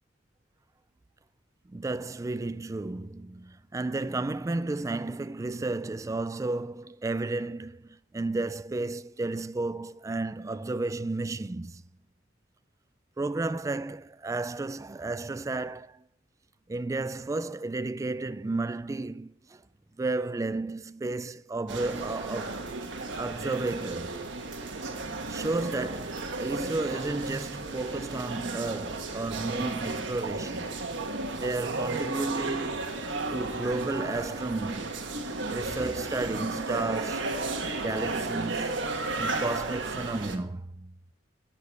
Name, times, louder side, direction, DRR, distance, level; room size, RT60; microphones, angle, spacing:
voice 1, 1.7-11.8 13.2-16.0 16.7-19.6 20.0-22.7 23.2-24.2 25.3-30.7 31.3-32.9 33.3-35.1 35.5-37.4 37.8-40.9, right 2 dB, 15° right, 0.3 m, -32 dB
sound 1, 21.7-40.4, right 3 dB, 85° right, 1.3 m, -34 dB
13.0 x 5.0 x 8.2 m
head